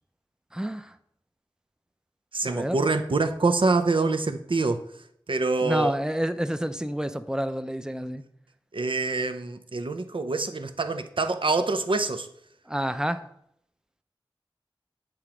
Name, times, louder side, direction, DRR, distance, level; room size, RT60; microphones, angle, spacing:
voice 1, 0.5-0.9 2.5-2.8 5.6-8.2 12.7-13.2, equal, 10° right, 10 dB, 0.5 m, -29 dB
voice 2, 2.3-4.8 5.3-5.9 8.7-12.3, right 3 dB, 65° right, 8 dB, 0.5 m, -25 dB
7.7 x 3.0 x 4.8 m, 0.70 s
wide cardioid pair, 45°, 9 cm